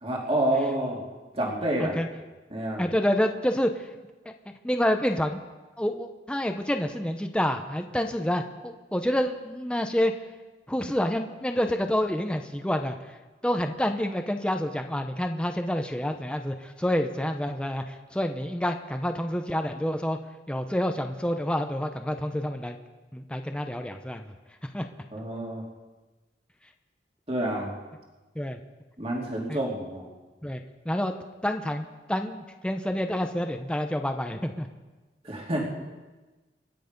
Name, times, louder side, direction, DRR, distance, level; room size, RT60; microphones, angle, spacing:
voice 1, 0.0-1.0 1.3-2.0 2.5-2.9 25.1-25.6 27.3-27.7 29.0-30.1 35.2-35.7, right 1 dB, 35° right, -2 dB, 2.7 m, -28 dB
voice 2, 2.8-3.9 4.2-4.3 4.6-5.4 5.8-10.1 10.7-13.0 13.4-20.2 20.5-22.8 23.1-24.3 24.7-24.8 28.4-28.6 29.5-29.6 30.4-30.6 30.9-31.1 31.4-34.7, equal, 5° left, 5 dB, 0.7 m, -28 dB
26.5 x 9.1 x 5.3 m, 1.2 s
head